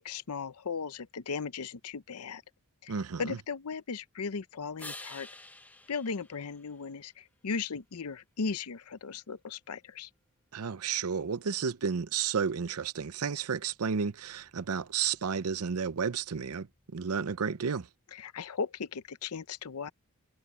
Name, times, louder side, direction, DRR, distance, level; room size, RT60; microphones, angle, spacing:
voice 1, 0.0-2.4 2.8-5.3 5.9-10.1 18.1-19.9, left 5 dB, 85° left, 0.7 m, -37 dB
voice 2, 2.9-3.4 10.5-16.7 16.9-17.9, right 6 dB, 80° right, 0.6 m, -32 dB
sound 1, 4.8-7.3 13.1-17.1, left 2 dB, 5° left, 0.8 m, -52 dB
head